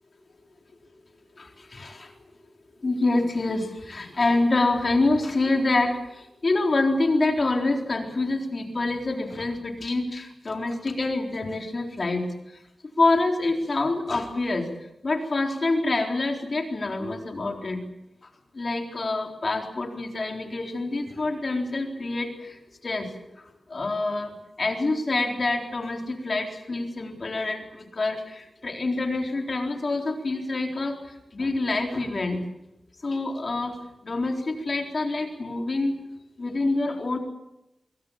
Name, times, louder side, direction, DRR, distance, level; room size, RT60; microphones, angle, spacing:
voice 1, 1.4-2.1 2.8-12.6 13.0-14.7 15.0-17.8 18.2-23.1 23.4-32.4 33.0-33.8 34.0-35.9 36.4-37.2, left 2 dB, 45° left, 3 dB, 4.0 m, -26 dB
27.0 x 22.5 x 7.3 m, 0.90 s
wide cardioid pair, 140°, 0 cm